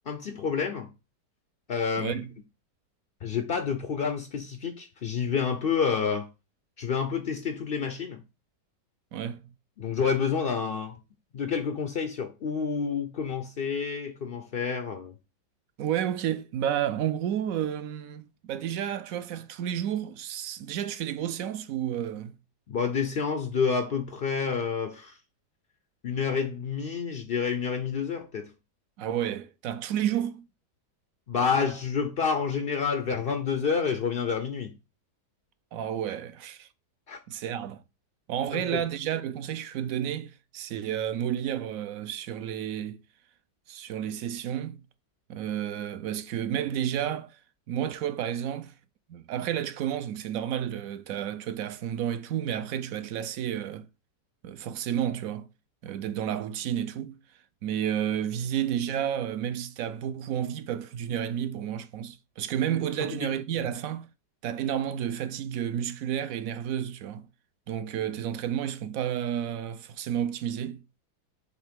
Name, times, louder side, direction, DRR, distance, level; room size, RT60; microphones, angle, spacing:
voice 1, 0.1-0.9 1.7-2.2 3.2-6.3 6.8-8.2 9.8-11.0 11.3-15.1 22.7-25.2 26.0-28.5 31.3-34.7 37.1-37.2 38.5-38.8 63.0-63.3 63.6-63.7, left 6 dB, 75° left, 0.5 m, -29 dB
voice 2, 2.0-2.3 9.1-9.4 15.8-22.3 29.0-30.5 35.7-36.7 37.3-37.8 38.3-43.0 43.7-44.8 45.3-47.4 47.7-48.7 49.1-53.9 54.4-55.5 55.8-57.2 57.6-64.1 64.4-67.3 67.7-70.8, right 10 dB, 70° right, 0.8 m, -31 dB
6.4 x 3.2 x 5.1 m
omnidirectional pair, 1.8 m